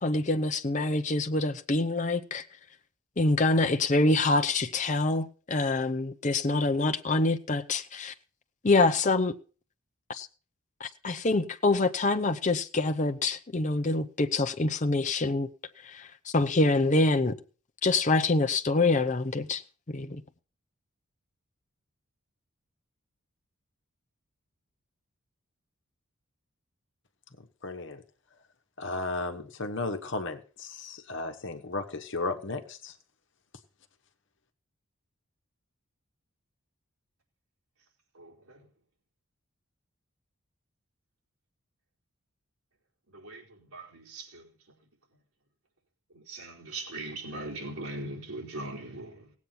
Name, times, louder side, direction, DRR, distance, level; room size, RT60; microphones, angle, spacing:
voice 1, 0.0-2.5 3.2-8.1 8.6-9.4 10.1-10.3 10.8-15.5 15.8-17.4 17.8-19.6 19.9-20.2, left 2 dB, 35° left, 0.7 m, -26 dB
voice 2, 27.6-28.0 28.8-32.9, left 3 dB, 55° left, 1.2 m, -34 dB
voice 3, 38.1-38.6 43.1-44.5 46.1-49.3, right 2 dB, 80° right, 4.7 m, -40 dB
17.5 x 8.3 x 5.8 m
head